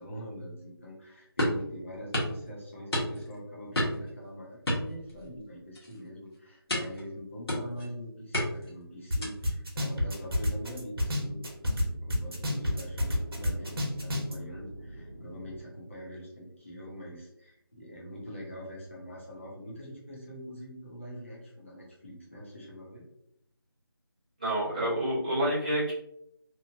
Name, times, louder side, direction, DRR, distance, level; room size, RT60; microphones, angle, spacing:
voice 1, 0.0-11.4 11.8-23.1, equal, 30° left, -5 dB, 0.6 m, -44 dB
sound 1, 1.4-1.7 2.1-2.4 2.9-3.4 3.7-4.1 4.7-5.4 5.7-6.0 6.7-7.0 7.5-7.9 8.3-8.7 9.2-9.5, left 1 dB, 75° left, 1.1 m, -30 dB
sound 2, 9.1-9.2 9.4-11.8 12.1-14.3, left 1 dB, 70° right, 0.9 m, -28 dB
sound 3, 11.1-15.6, right 1 dB, 55° left, 1.1 m, -46 dB
voice 2, 24.4-25.9, right 1 dB, 20° right, -11 dB, 0.6 m, -28 dB
2.9 x 2.0 x 2.5 m, 0.78 s
figure-of-eight pair, 175°, 13 cm